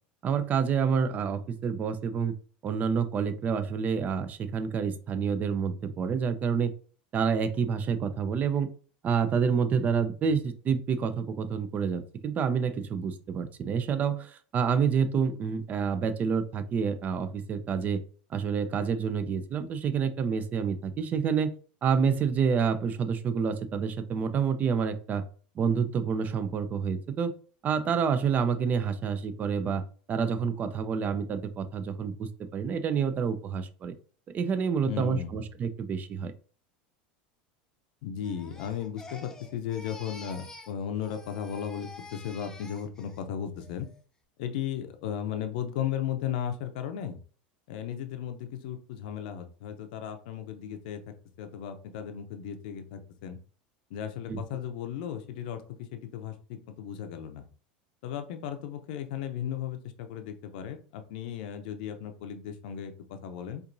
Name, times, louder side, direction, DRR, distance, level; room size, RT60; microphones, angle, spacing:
voice 1, 0.2-2.3 2.6-6.7 7.1-8.7 9.0-18.0 18.3-21.5 21.8-25.2 25.6-27.3 27.6-29.8 30.1-33.9 34.3-36.3 54.3-54.4, right 6 dB, 35° right, 11 dB, 0.5 m, -28 dB
voice 2, 34.9-35.4 38.0-43.9 44.4-47.2 47.7-51.0 51.4-53.4 53.9-55.6 55.9-57.5 58.0-63.6, left 9 dB, 70° left, 7 dB, 0.6 m, -35 dB
Crying sobbing, 38.2-40.8 41.0-43.2 43.6-44.0, left 3 dB, 10° left, 0.6 m, -48 dB
4.4 x 2.6 x 2.6 m, 0.41 s
supercardioid pair, 105°, 5 cm